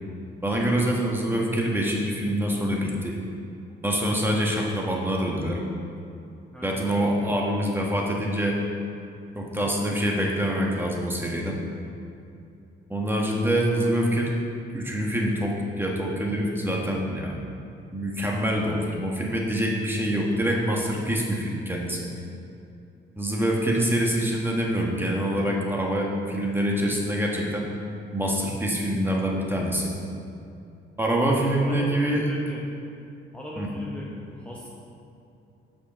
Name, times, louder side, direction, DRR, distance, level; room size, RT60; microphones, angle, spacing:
voice 1, 0.4-3.2 3.8-5.6 6.6-8.6 9.3-11.6 12.9-14.4 14.7-17.4 17.9-22.1 23.2-27.7 28.1-29.9 31.0-32.3 33.6-33.7, equal, 10° right, -2 dB, 1.2 m, -25 dB
voice 2, 6.5-6.8 31.6-32.7 33.3-34.7, left 1 dB, 5° left, -5 dB, 0.9 m, -37 dB
6.5 x 5.4 x 5.0 m, 2.6 s
cardioid pair, 90°, 20 cm